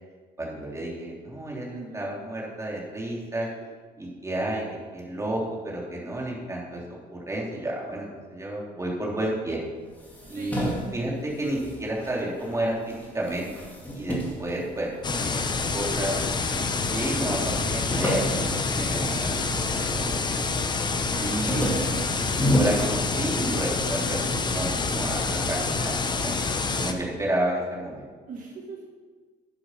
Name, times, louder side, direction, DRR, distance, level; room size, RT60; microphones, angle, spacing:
voice 1, 0.4-1.7 1.9-3.5 4.0-4.6 4.9-6.8 7.1-9.6 10.3-13.5 13.9-15.4 15.7-16.1 16.9-20.1 21.1-21.9 22.3-26.4 26.7-28.1, right 1 dB, 15° right, -3 dB, 3.3 m, -31 dB
voice 2, 1.7-2.1 3.4-3.5 10.3-10.9 15.6-16.2 21.1-21.9 28.3-28.8, right 3 dB, 50° right, -1 dB, 1.8 m, -41 dB
sound 1, 9.9-12.6 12.9-15.4 16.0-16.7 16.9-17.0 17.3-19.9 20.3-20.7 21.1-23.7, equal, 10° left, 2.6 m, -30 dB
sound 2, 15.0-26.9, left 4 dB, 25° left, 1.0 m, -27 dB
9.9 x 8.1 x 5.8 m, 1.5 s
cardioid pair, 110°, 17 cm